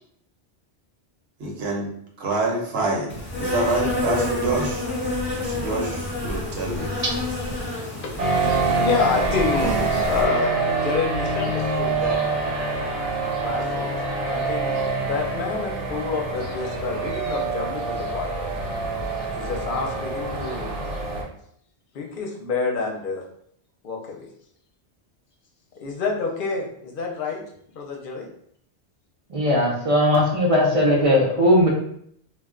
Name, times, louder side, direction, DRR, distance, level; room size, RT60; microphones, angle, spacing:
voice 1, 1.4-1.9 2.2-3.1 3.4-4.9 5.4-6.9, right 2 dB, 65° right, -1 dB, 1.0 m, -26 dB
Insect, 3.1-10.3, left 2 dB, 10° left, 0.9 m, -28 dB
voice 2, 7.7-8.5 8.8-12.2 13.4-13.9 14.3-18.5 19.3-20.7 21.9-23.2 23.8-24.3 25.8-27.4 27.7-28.3, left 4 dB, 55° left, 0 dB, 0.7 m, -28 dB
sound 1, 8.2-21.2, right 3 dB, 85° right, 1.1 m, -26 dB
voice 3, 29.3-31.7, left 1 dB, 40° right, -2 dB, 0.5 m, -18 dB
2.2 x 2.1 x 3.6 m, 0.67 s
omnidirectional pair, 1.2 m